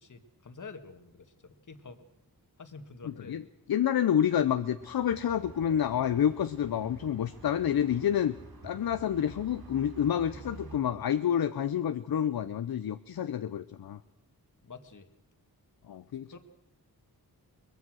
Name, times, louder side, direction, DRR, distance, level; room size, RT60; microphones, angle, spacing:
voice 1, 0.0-2.0 2.6-3.4 14.6-15.1 16.3-16.4, left 4 dB, 55° left, 8 dB, 1.9 m, -48 dB
voice 2, 3.0-8.4 8.6-14.0 15.9-16.4, left 9 dB, 70° left, 11 dB, 0.7 m, -29 dB
sound 1, 4.8-10.8, right 3 dB, 70° right, 2.9 m, -49 dB
22.5 x 21.0 x 6.3 m, 0.88 s
wide cardioid pair, 90°, 37 cm